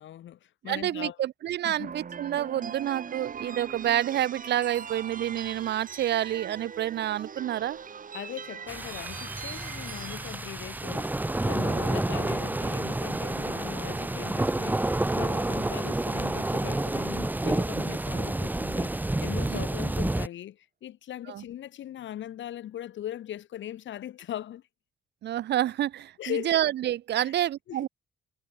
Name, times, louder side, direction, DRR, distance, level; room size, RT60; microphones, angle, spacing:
voice 1, 0.0-1.2 1.6-1.9 8.1-24.6 26.2-26.6 27.1-27.3 27.7-27.8, left 11 dB, 70° left, 2.0 m, -39 dB
voice 2, 0.6-7.8 19.5-19.6 21.3-21.4 25.2-27.9, right 12 dB, 60° right, 0.5 m, -28 dB
sound 1, 1.8-18.0, right 6 dB, 45° right, 3.5 m, -43 dB
sound 2, 8.7-20.3, right 2 dB, 10° right, 0.8 m, -29 dB
cardioid pair, 90°, 20 cm